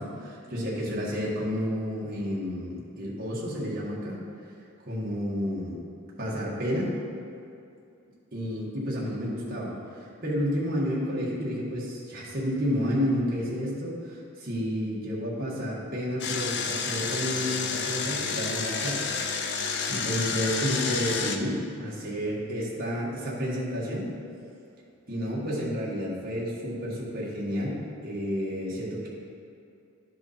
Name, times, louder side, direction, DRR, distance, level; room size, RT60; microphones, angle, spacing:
voice 1, 0.0-4.2 4.8-5.8 6.2-6.9 8.3-9.7 10.0-19.0 19.5-24.1 25.1-29.1, equal, 45° right, -5 dB, 1.7 m, -31 dB
Engine, 16.2-21.4, left 5 dB, 55° left, 0.5 m, -30 dB
11.5 x 4.7 x 4.2 m, 2.6 s
head